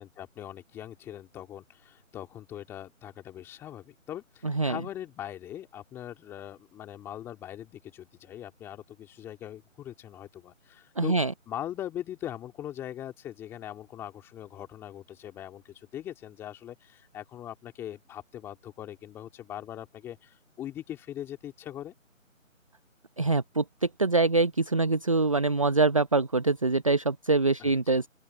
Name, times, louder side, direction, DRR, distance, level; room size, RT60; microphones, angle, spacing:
voice 1, 0.0-11.2 11.5-21.9 27.6-28.0, left 11 dB, 5° left, 2.8 m, -41 dB
voice 2, 4.4-4.8 11.0-11.3 23.2-28.1, right 3 dB, 25° right, 0.8 m, -24 dB
open air
figure-of-eight pair, 160°, 40 cm